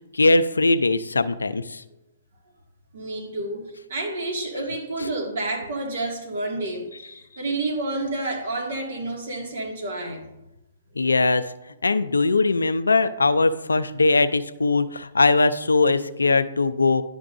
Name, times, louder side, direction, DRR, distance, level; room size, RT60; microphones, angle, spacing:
voice 1, 0.2-1.6 11.0-11.4 11.8-17.0, left 3 dB, 90° left, 12 dB, 0.5 m, -20 dB
voice 2, 2.9-10.3, right 2 dB, 60° right, 1 dB, 1.9 m, -29 dB
11.0 x 6.0 x 2.6 m, 0.92 s
hypercardioid pair, 130°, 0 cm